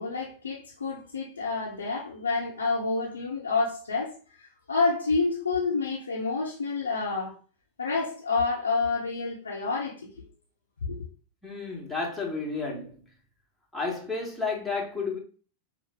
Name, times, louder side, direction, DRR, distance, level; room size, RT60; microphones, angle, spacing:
voice 1, 0.0-7.4 7.8-10.1 10.8-11.0, left 4 dB, 75° left, 0.8 m, -29 dB
voice 2, 11.4-13.0 13.7-15.2, left 4 dB, 5° left, 1.2 m, -31 dB
5.5 x 2.1 x 3.5 m
figure-of-eight pair, 90°, 0 cm